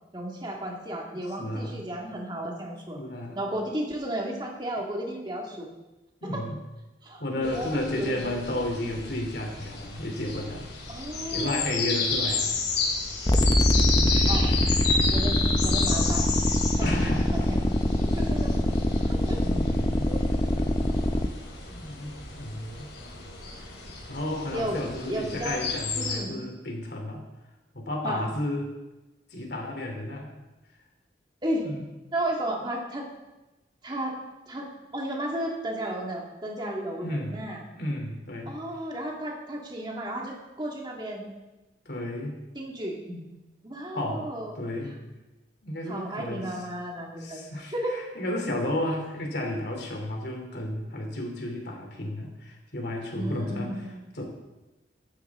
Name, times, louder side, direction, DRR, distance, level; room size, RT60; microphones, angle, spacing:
voice 1, 0.1-3.0 3.3-5.7 6.3-6.4 7.0-8.1 10.9-11.8 14.3-14.5 15.1-16.2 16.8-17.6 18.1-18.6 19.0-19.4 20.0-20.2 24.5-24.8 25.1-25.6 25.9-26.4 28.0-28.2 31.4-31.7 32.1-33.1 33.8-34.2 34.5-34.7 34.9-37.6 38.5-41.3 42.5-43.0 43.6-44.6 44.9-45.0 45.9-47.4 47.7-48.0 53.1-54.0, right 1 dB, 25° right, -1 dB, 2.1 m, -33 dB
voice 2, 1.0-1.8 2.9-3.4 6.2-6.6 7.2-10.7 11.3-12.5 13.7-14.1 16.8-17.5 19.4-20.1 20.5-20.9 21.7-22.9 24.1-27.2 27.7-28.7 29.3-30.3 31.6-31.9 37.0-37.4 37.8-38.5 41.8-42.3 43.0-43.3 43.9-44.3 44.6-44.9 45.6-46.6 47.2-53.7 54.1-54.2, left 1 dB, 65° left, 1 dB, 3.2 m, -32 dB
sound 1, 7.4-26.2, left 4 dB, 85° left, 3.8 m, -32 dB
sound 2, 13.3-21.3, left 1 dB, 25° left, 0.6 m, -24 dB
14.5 x 12.0 x 3.7 m, 1.1 s
head